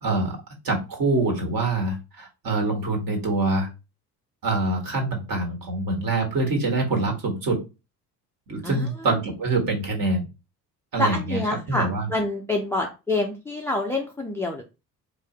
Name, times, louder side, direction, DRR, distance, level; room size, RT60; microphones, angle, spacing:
voice 1, 0.0-0.4 0.6-3.7 4.4-7.6 8.5-10.3 10.9-11.4 11.7-12.1, right 2 dB, 45° right, 1 dB, 1.6 m, -25 dB
voice 2, 11.0-14.6, left 2 dB, 5° left, 2 dB, 0.4 m, -27 dB
4.7 x 2.0 x 4.1 m, 0.28 s
figure-of-eight pair, 55°, 49 cm